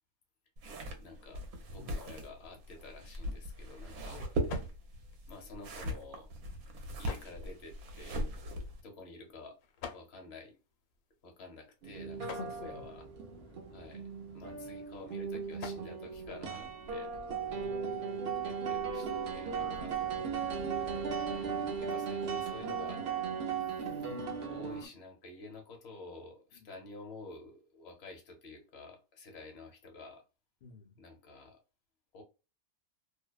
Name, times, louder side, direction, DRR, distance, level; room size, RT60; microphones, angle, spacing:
sound 1, 0.6-8.8, right 1 dB, 75° right, 1.1 m, -39 dB
voice 1, 1.0-1.4 1.7-4.2 5.3-6.3 7.0-8.5 8.8-9.6 9.9-10.6 11.2-13.0 13.7-14.0 14.3-17.2 18.4-19.9 21.3-23.0 24.5-30.2 31.0-31.6 32.1-32.2, left 3 dB, 50° left, 1.0 m, -50 dB
sound 2, 2.9-17.2, left 6 dB, 85° left, 1.1 m, -53 dB
sound 3, 11.8-24.9, right 6 dB, 55° right, 0.7 m, -37 dB
voice 2, 12.2-12.9 14.3-14.9 17.4-18.6 19.5-21.2 23.9-24.4 26.5-26.7 30.6-31.0, left 4 dB, 70° left, 0.4 m, -52 dB
2.7 x 2.1 x 2.2 m
omnidirectional pair, 1.5 m